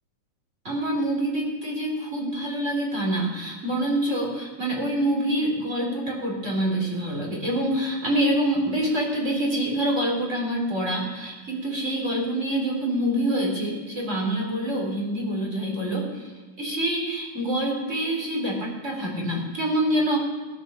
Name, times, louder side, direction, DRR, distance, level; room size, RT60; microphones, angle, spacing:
voice 1, 0.6-16.3 16.6-20.2, right 1 dB, 20° right, -2 dB, 4.0 m, -26 dB
17.5 x 11.0 x 7.0 m, 1.3 s
omnidirectional pair, 3.7 m